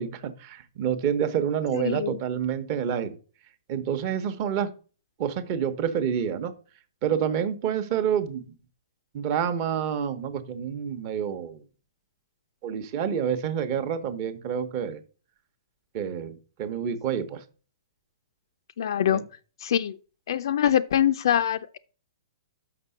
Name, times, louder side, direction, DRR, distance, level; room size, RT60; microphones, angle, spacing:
voice 1, 0.0-3.2 3.7-4.7 5.2-6.5 7.0-8.5 9.1-11.6 12.6-15.0 15.9-17.4 19.1-19.2, right 8 dB, 35° right, 0.9 m, -28 dB
voice 2, 1.7-2.2 18.8-19.2 19.6-20.0 20.3-21.8, left 10 dB, 65° left, 0.4 m, -24 dB
5.9 x 5.6 x 5.6 m
hypercardioid pair, 165°, 3 cm